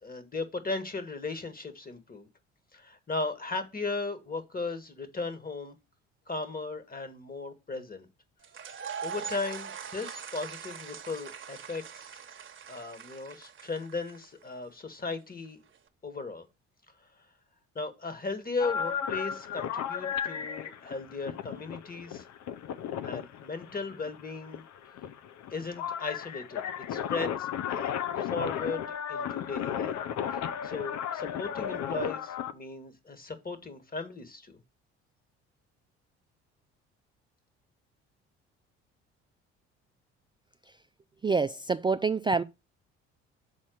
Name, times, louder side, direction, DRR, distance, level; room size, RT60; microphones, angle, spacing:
voice 1, 0.0-2.3 2.7-5.7 6.3-8.1 9.0-12.2 12.7-15.6 16.0-16.5 17.7-22.2 23.0-24.7 25.5-26.6 26.9-27.9 28.2-30.0 30.6-34.6, left 3 dB, 25° left, 1.8 m, -36 dB
sound 1, 8.4-14.4, right 7 dB, 35° right, 1.1 m, -42 dB
sound 2, 18.6-32.5, left 8 dB, 55° left, 0.8 m, -34 dB
voice 2, 41.2-42.4, right 4 dB, 15° right, 0.3 m, -26 dB
6.5 x 4.2 x 6.3 m
hypercardioid pair, 55°, 33 cm